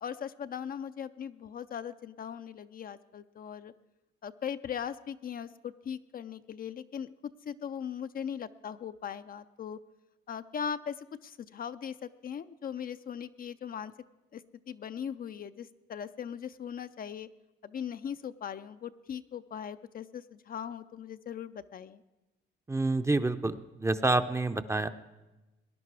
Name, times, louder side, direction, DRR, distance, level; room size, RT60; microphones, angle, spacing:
voice 1, 0.0-3.7 4.2-9.8 10.3-13.9 14.3-17.3 17.6-22.0, left 8 dB, 45° left, 11 dB, 0.5 m, -39 dB
voice 2, 22.7-24.9, right 2 dB, 15° right, 10 dB, 0.6 m, -28 dB
19.0 x 10.5 x 4.8 m, 1.1 s
cardioid pair, 90°, 20 cm